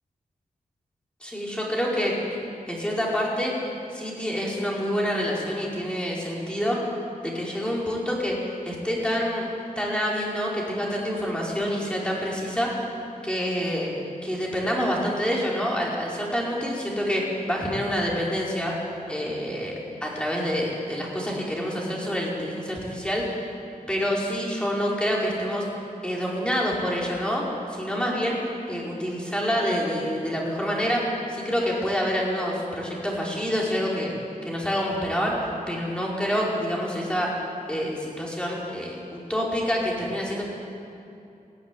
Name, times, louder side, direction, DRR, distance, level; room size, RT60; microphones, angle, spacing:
voice 1, 1.2-2.1 2.7-3.5 3.9-6.8 7.2-9.5 9.8-12.8 13.2-14.0 14.2-18.7 19.1-19.7 20.0-23.2 23.9-25.7 26.0-27.4 27.7-28.4 28.7-34.1 34.4-37.3 37.7-40.4, equal, 5° left, -4 dB, 4.6 m, -27 dB
18.5 x 17.5 x 9.8 m, 2.7 s
wide cardioid pair, 170°, 15 cm